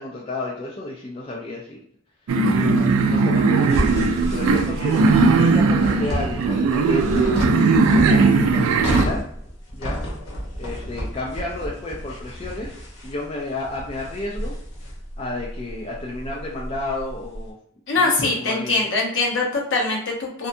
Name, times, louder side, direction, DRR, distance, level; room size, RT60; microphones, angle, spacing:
voice 1, 0.0-1.8 2.6-7.4 7.9-9.3 9.7-10.0 10.6-14.5 15.2-17.5 17.9-18.9, left 2 dB, 25° left, -3 dB, 0.3 m, -32 dB
sound 1, 2.3-9.0, right 4 dB, 85° right, 0.3 m, -18 dB
sound 2, 3.7-17.4, equal, 90° left, 0.9 m, -31 dB
voice 2, 17.9-20.5, left 3 dB, 60° left, -2 dB, 0.7 m, -22 dB
2.6 x 2.2 x 2.5 m, 0.65 s
head